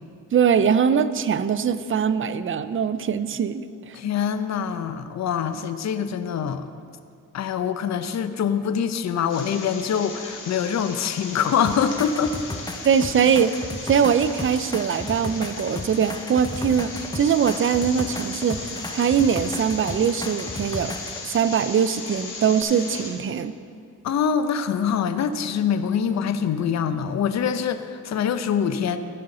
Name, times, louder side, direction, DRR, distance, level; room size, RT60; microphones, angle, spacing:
voice 1, 0.3-4.0 12.8-13.5 13.8-20.9 21.2-23.5, right 7 dB, 40° right, 13 dB, 0.5 m, -22 dB
voice 2, 3.9-6.7 7.3-12.4 24.0-29.0, left 7 dB, 55° left, 10 dB, 0.6 m, -24 dB
sound 1, 9.3-23.1, left 3 dB, 75° left, 1.8 m, -37 dB
sound 2, 11.6-21.2 22.6-22.7, left 2 dB, 10° left, 0.7 m, -35 dB
15.0 x 5.6 x 3.9 m, 2.2 s
cardioid pair, 65°, 32 cm